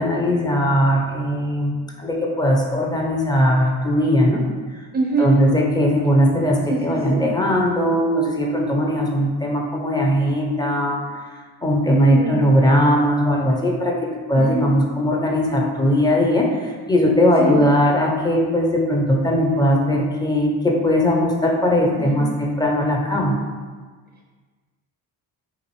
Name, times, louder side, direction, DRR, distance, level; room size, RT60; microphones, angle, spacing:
voice 1, 0.0-4.4 4.7-4.8 5.2-11.2 11.6-23.4, equal, 10° left, -1 dB, 0.7 m, -19 dB
voice 2, 4.9-5.3 6.7-7.3 11.9-12.4 14.5-14.7 17.4-17.6 22.2-22.3, right 3 dB, 25° right, -2 dB, 0.7 m, -24 dB
3.9 x 2.5 x 3.1 m, 1.5 s
supercardioid pair, 60°, 44 cm